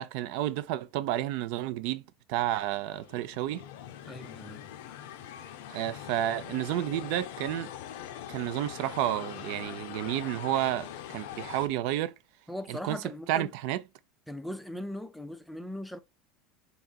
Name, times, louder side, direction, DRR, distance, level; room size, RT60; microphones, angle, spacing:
voice 1, 0.0-2.0 2.3-3.7 5.7-7.7 8.3-12.2 12.7-13.0 13.3-13.8, right 13 dB, 60° right, 0.4 m, -31 dB
sound 1, 2.4-11.7, left 10 dB, 75° left, 0.5 m, -43 dB
voice 2, 4.0-4.6 12.5-13.5 14.3-16.0, left 1 dB, 5° left, 0.4 m, -39 dB
3.8 x 3.5 x 2.3 m
supercardioid pair, 160°, 0 cm